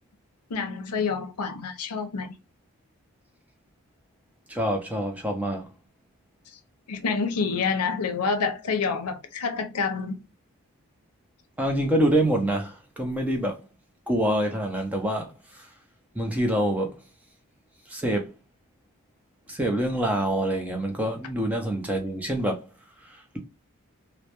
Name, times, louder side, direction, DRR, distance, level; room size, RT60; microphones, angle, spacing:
voice 1, 0.5-2.3 6.9-10.1, left 5 dB, 85° left, 0.5 m, -28 dB
voice 2, 4.5-5.7 11.6-13.6 14.1-15.7 16.1-17.0 17.9-18.3 19.5-22.7 23.0-23.4, right 1 dB, 5° right, 0.4 m, -26 dB
2.2 x 2.1 x 2.8 m
head